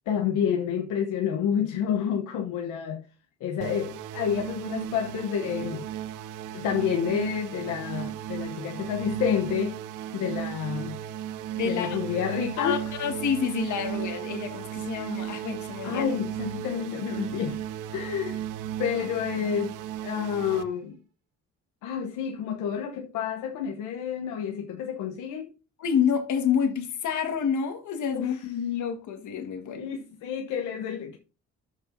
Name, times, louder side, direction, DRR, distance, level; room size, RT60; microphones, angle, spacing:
voice 1, 0.1-3.0 3.4-5.9 6.5-9.8 10.1-11.0 11.6-12.8 15.8-17.6 17.9-18.4 18.8-19.8 20.0-21.0 21.8-25.5 28.1-28.4 29.7-31.2, left 8 dB, 90° left, 0.9 m, -29 dB
sound 1, 3.6-20.6, right 11 dB, 90° right, 0.6 m, -35 dB
voice 2, 11.5-12.0 12.6-16.0 25.8-29.9, left 7 dB, 75° left, 1.6 m, -28 dB
13.0 x 5.3 x 2.6 m
cardioid pair, 90°, 30 cm